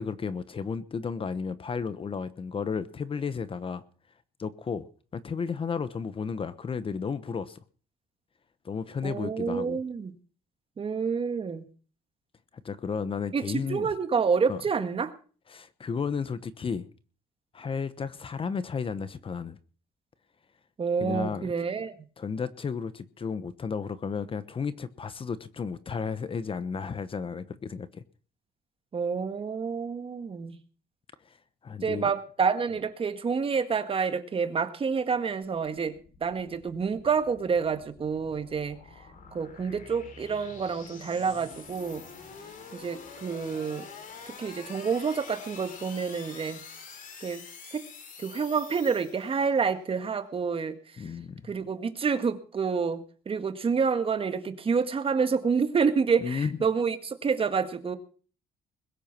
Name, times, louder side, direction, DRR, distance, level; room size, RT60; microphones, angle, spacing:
voice 1, 0.0-3.8 4.4-4.9 5.1-7.6 8.6-9.8 12.6-13.9 14.5-14.6 15.5-16.9 17.5-19.6 21.0-21.5 22.2-28.0 31.2-31.4 31.6-32.1 51.0-51.5 56.2-56.6, left 5 dB, 30° left, 1.1 m, -33 dB
voice 2, 9.0-10.1 10.8-11.7 13.3-15.1 20.8-21.9 28.9-30.6 31.8-38.8 39.3-42.0 42.7-43.9 44.3-46.6 47.2-47.4 47.7-47.8 48.2-50.8 51.5-58.0, right 5 dB, 35° right, 1.8 m, -28 dB
sound 1, 35.1-49.6, left 5 dB, 50° left, 3.7 m, -47 dB
21.5 x 8.4 x 6.1 m
cardioid pair, 110°, 17 cm